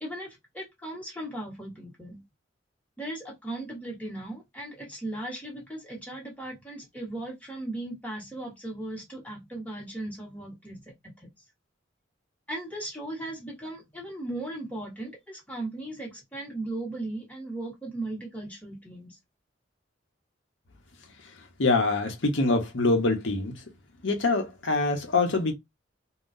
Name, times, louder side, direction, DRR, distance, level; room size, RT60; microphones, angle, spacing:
voice 1, 0.0-2.2 3.0-11.3 12.5-19.2, right 1 dB, 10° left, 1.3 m, -37 dB
voice 2, 21.6-23.5 24.0-25.5, left 3 dB, 80° left, 0.9 m, -24 dB
3.7 x 2.3 x 2.6 m
head